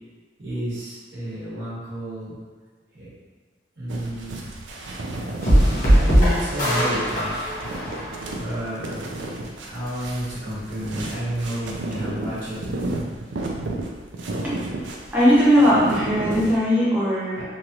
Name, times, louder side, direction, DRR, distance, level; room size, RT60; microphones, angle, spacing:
voice 1, 0.4-2.4 2.9-3.1 3.8-4.4 5.8-7.5 8.3-8.9 9.6-12.6 17.3-17.4, equal, 65° right, -9 dB, 1.3 m, -30 dB
sound 1, 3.9-16.6, right 2 dB, 85° right, 0.4 m, -33 dB
sound 2, 5.4-8.6, equal, 45° left, 0.9 m, -20 dB
voice 2, 15.1-17.4, equal, 10° right, -9 dB, 0.8 m, -18 dB
3.1 x 2.5 x 2.8 m, 1.4 s
head